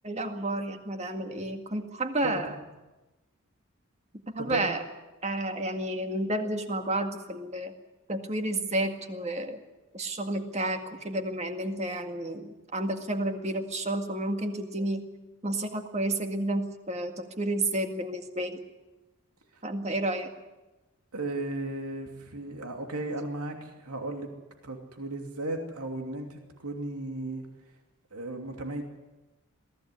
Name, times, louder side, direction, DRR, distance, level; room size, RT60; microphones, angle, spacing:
voice 1, 0.0-2.5 4.1-4.8 5.2-7.7 8.1-9.6 9.9-15.1 15.4-18.6 19.6-20.3, right 1 dB, 30° right, 6 dB, 2.0 m, -31 dB
voice 2, 4.4-4.7 21.1-24.3 24.6-27.5 28.1-28.8, right 2 dB, 90° right, 4 dB, 2.8 m, -35 dB
23.0 x 15.5 x 9.8 m, 1.1 s
head